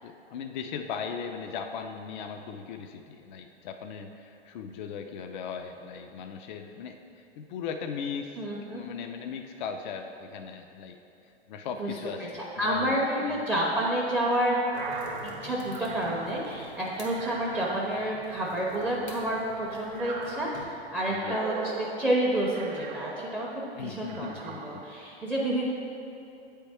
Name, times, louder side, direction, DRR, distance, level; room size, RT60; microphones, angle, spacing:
voice 1, 0.0-8.4 8.7-11.0 11.5-13.3 21.1-21.4 23.8-24.9, left 6 dB, 45° left, 5 dB, 0.4 m, -38 dB
voice 2, 8.4-8.8 11.8-11.9 12.2-14.6 15.4-25.7, right 1 dB, 5° right, -4 dB, 0.6 m, -29 dB
sound 1, 14.6-23.6 24.0-25.1, right 4 dB, 45° right, 0.8 m, -41 dB
sound 2, 14.7-20.6, left 1 dB, 85° left, 1.3 m, -49 dB
8.5 x 3.5 x 4.3 m, 2.7 s
figure-of-eight pair, 105°, 33 cm